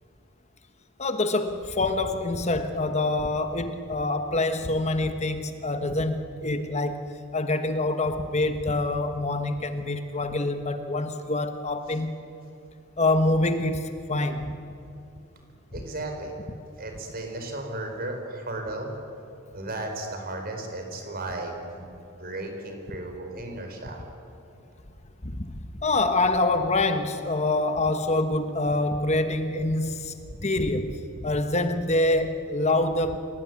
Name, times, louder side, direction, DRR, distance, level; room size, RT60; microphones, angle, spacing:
voice 1, 1.0-12.1 13.0-14.5 25.2-30.1 30.4-33.2, left 2 dB, 30° left, 8 dB, 1.1 m, -26 dB
voice 2, 15.7-16.4 16.8-18.9 19.5-21.9 22.2-24.1, right 2 dB, 45° right, 3 dB, 4.6 m, -35 dB
28.5 x 18.5 x 9.5 m, 2.7 s
head